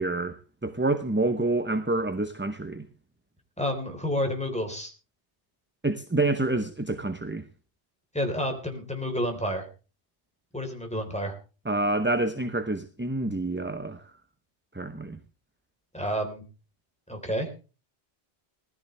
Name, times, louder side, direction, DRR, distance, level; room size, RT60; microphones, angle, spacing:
voice 1, 0.0-2.9 5.8-7.5 11.7-14.0 14.7-15.2, right 2 dB, 10° right, 0.8 m, -27 dB
voice 2, 3.6-4.9 8.1-9.7 10.5-11.4 15.9-16.4 17.1-17.5, equal, 5° left, 3.9 m, -30 dB
20.0 x 13.5 x 3.3 m
omnidirectional pair, 1.1 m